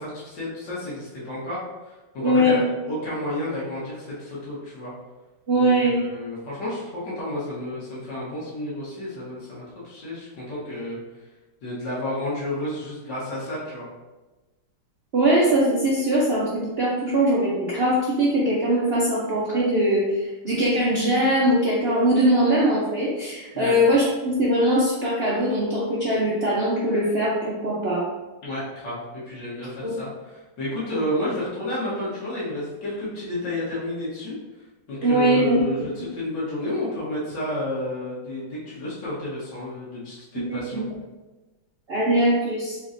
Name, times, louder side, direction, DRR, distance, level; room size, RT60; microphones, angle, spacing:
voice 1, 0.0-1.6 1.9-2.6 2.9-4.9 5.5-11.0 11.6-13.9 23.5-23.8 28.4-34.4 34.9-40.8, left 1 dB, 75° left, -8 dB, 1.9 m, -31 dB
voice 2, 2.2-2.6 5.5-6.0 15.1-28.1 29.8-29.9 35.0-35.6 40.5-40.8 41.9-42.8, right 1 dB, 80° right, -6 dB, 0.5 m, -21 dB
4.3 x 3.8 x 2.5 m, 1.2 s
omnidirectional pair, 2.0 m